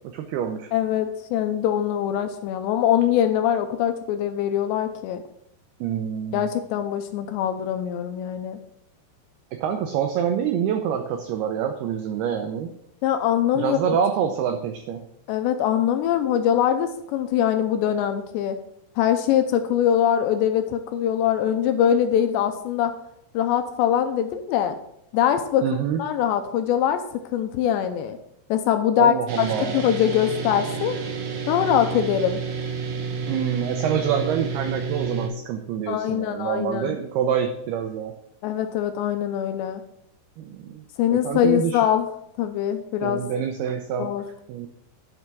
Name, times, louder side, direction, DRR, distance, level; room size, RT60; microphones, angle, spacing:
voice 1, 0.1-0.7 5.8-6.5 9.5-12.7 13.6-15.1 25.6-26.0 29.0-29.9 33.3-38.1 40.4-40.8 41.1-41.8 43.0-44.1 44.5-44.7, right 8 dB, 85° right, 6 dB, 2.2 m, -26 dB
voice 2, 0.7-5.2 6.3-8.6 13.0-14.0 15.3-18.6 19.0-22.9 23.3-24.8 25.1-25.6 26.0-27.0 27.3-28.2 28.5-29.1 29.7-31.0 31.5-32.4 35.9-37.0 38.4-39.8 41.0-42.1 42.4-43.2 44.0-44.2, left 10 dB, 80° left, 7 dB, 2.7 m, -23 dB
sound 1, 29.3-35.3, right 5 dB, 65° right, 2.4 m, -30 dB
11.0 x 5.7 x 4.6 m, 0.74 s
omnidirectional pair, 5.4 m